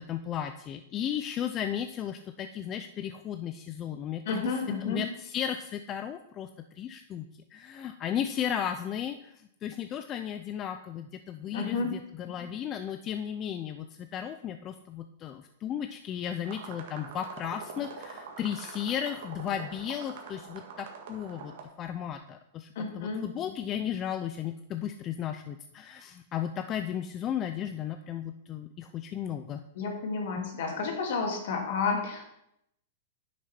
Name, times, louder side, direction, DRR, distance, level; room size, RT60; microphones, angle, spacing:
voice 1, 0.0-4.5 4.8-6.5 6.7-21.5 21.8-29.6 30.4-30.5, left 9 dB, 30° left, 8 dB, 0.4 m, -35 dB
voice 2, 4.3-5.0 11.5-12.0 22.8-23.2 29.8-32.3, left 4 dB, 65° left, 1 dB, 2.6 m, -31 dB
sound 1, 16.4-21.6, right 5 dB, 65° right, 1.7 m, -44 dB
10.0 x 6.2 x 4.4 m, 0.79 s
hypercardioid pair, 145°, 0 cm